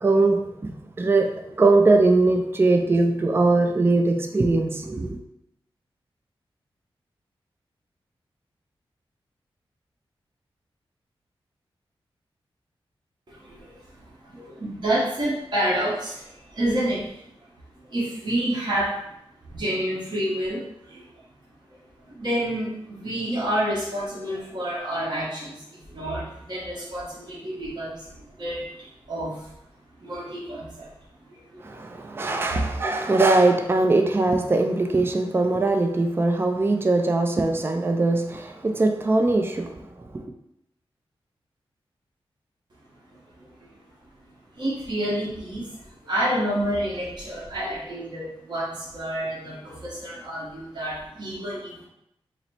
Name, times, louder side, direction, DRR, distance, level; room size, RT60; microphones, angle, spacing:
voice 1, 0.0-5.2 31.6-40.3, right 2 dB, 25° right, 0.4 m, -21 dB
voice 2, 13.3-13.8 14.2-17.1 17.8-19.0 19.5-21.0 22.0-29.5 30.0-30.9 31.3-32.0 43.1-43.7 44.6-51.9, right 1 dB, 45° right, 1.2 m, -29 dB
3.9 x 2.0 x 4.3 m
cardioid pair, 60°, 10 cm